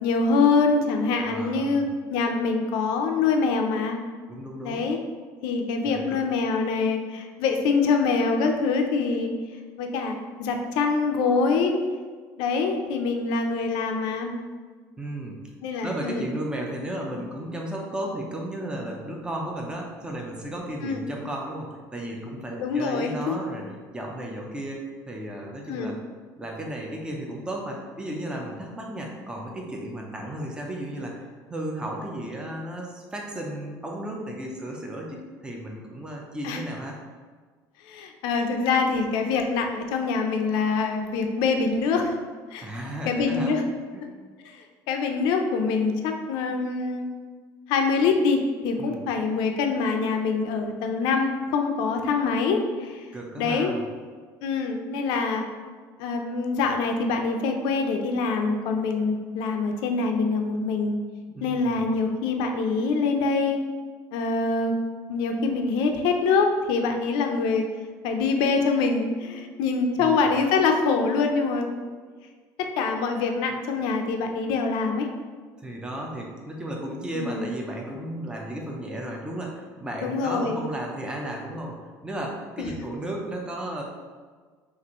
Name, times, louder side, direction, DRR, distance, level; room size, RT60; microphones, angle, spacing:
voice 1, 0.0-4.0 4.6-5.0 5.4-9.3 9.8-11.8 12.4-14.3 15.6-16.3 20.8-21.0 22.6-23.4 25.7-26.0 36.4-36.6 37.8-42.2 42.5-42.7 43.1-43.6 44.4-47.1 47.7-53.1 53.4-53.7 54.4-55.5 56.0-61.0 61.4-63.6 64.1-64.7 65.1-67.7 68.0-71.7 72.6-75.1 77.1-77.5 80.0-80.6 82.6-82.9, left 4 dB, 80° left, 4 dB, 0.6 m, -25 dB
voice 2, 1.3-1.8 4.3-4.8 5.8-6.2 15.0-15.4 15.8-23.6 23.9-26.0 26.4-37.0 42.6-43.6 43.9-44.1 48.8-49.1 53.1-53.8 61.3-61.9 70.0-70.3 75.6-83.8, right 1 dB, 10° right, -1 dB, 0.7 m, -34 dB
5.9 x 2.6 x 3.0 m, 1.5 s
cardioid pair, 130°, 8 cm